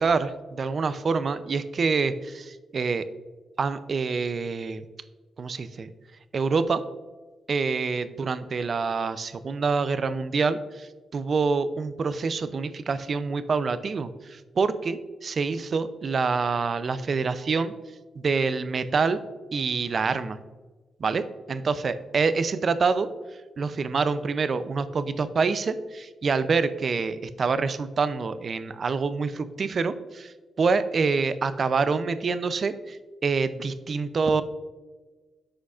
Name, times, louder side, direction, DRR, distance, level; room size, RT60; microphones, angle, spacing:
voice 1, 0.0-3.0 3.6-4.8 5.4-5.9 6.3-6.8 7.5-17.7 18.2-19.2 19.5-20.4 21.0-23.1 23.6-30.3 30.6-34.4, right 4 dB, 50° right, 13 dB, 0.5 m, -26 dB
9.6 x 6.2 x 2.4 m, 1.3 s
cardioid pair, 85°, 0 cm